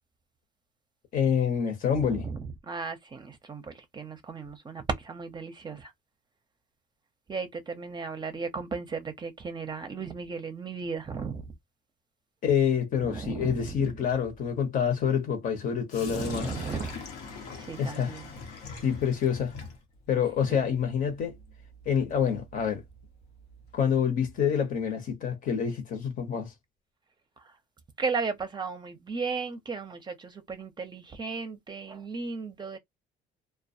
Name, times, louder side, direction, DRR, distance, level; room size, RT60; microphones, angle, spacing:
voice 1, 1.1-2.3 12.4-16.5 17.8-18.2 18.8-19.5 20.1-21.4 21.9-22.8 23.7-26.5, left 7 dB, 55° left, 0.9 m, -27 dB
voice 2, 1.9-5.9 7.3-11.5 13.0-14.0 16.0-17.0 17.6-18.3 20.5-20.6 27.4-27.5 28.0-32.8, right 5 dB, 25° right, 0.6 m, -35 dB
Sink (filling or washing), 15.9-23.8, left 4 dB, 80° left, 0.9 m, -44 dB
2.2 x 2.1 x 2.6 m
cardioid pair, 110°, 17 cm